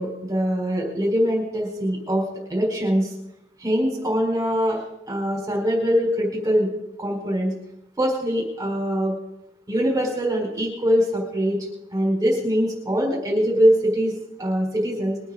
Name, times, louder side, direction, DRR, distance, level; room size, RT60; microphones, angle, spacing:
voice 1, 0.0-2.2 2.5-3.1 3.6-4.8 5.1-6.7 7.0-7.5 8.0-9.1 9.7-11.6 11.9-14.1 14.4-15.2, equal, 15° right, -2 dB, 4.6 m, -22 dB
22.5 x 9.3 x 5.0 m, 0.86 s
head